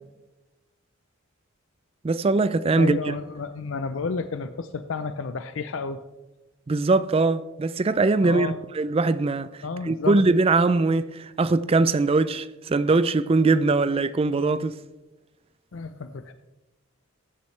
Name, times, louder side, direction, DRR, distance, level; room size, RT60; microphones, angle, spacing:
voice 1, 2.0-3.1 6.7-9.5 9.9-14.7, right 3 dB, 25° right, 0.3 m, -21 dB
voice 2, 2.8-6.0 8.2-8.6 9.6-10.2 15.7-16.3, left 4 dB, 65° left, 0.5 m, -31 dB
14.5 x 8.3 x 3.3 m
head